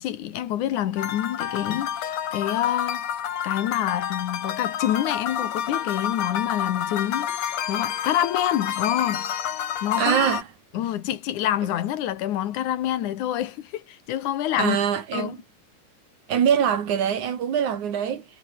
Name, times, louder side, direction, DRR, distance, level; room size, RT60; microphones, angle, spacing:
voice 1, 0.0-3.0 3.4-7.4 7.7-9.3 9.8-10.3 10.7-14.8 15.1-15.3, left 12 dB, 85° left, 2.8 m, -27 dB
sound 1, 1.0-10.4, left 9 dB, 65° left, 2.8 m, -29 dB
voice 2, 10.0-10.4 14.6-15.4 16.3-18.2, right 8 dB, 80° right, 3.8 m, -23 dB
omnidirectional pair, 3.4 m